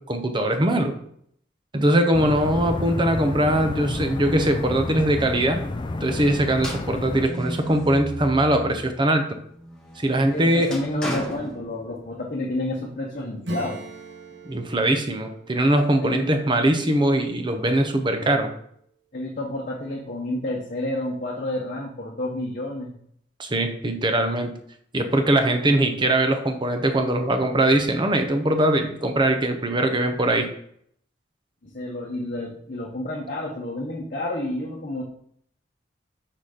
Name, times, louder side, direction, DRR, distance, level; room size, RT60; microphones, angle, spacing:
voice 1, 0.1-0.9 1.7-5.6 6.0-9.4 10.0-10.7 14.4-18.5 23.4-24.5 24.9-30.5, right 1 dB, 25° right, 6 dB, 0.7 m, -21 dB
sound 1, 2.1-7.3, left 2 dB, 25° left, 0.3 m, -30 dB
sound 2, 6.6-9.0 9.4-12.3, equal, 5° left, 1.2 m, -35 dB
voice 2, 10.3-13.8 16.0-16.4 19.1-22.9 31.6-35.0, left 1 dB, 45° left, -3 dB, 1.0 m, -30 dB
Acoustic guitar / Strum, 13.4-17.7, right 1 dB, 65° right, 1.0 m, -40 dB
5.8 x 4.1 x 4.9 m, 0.66 s
head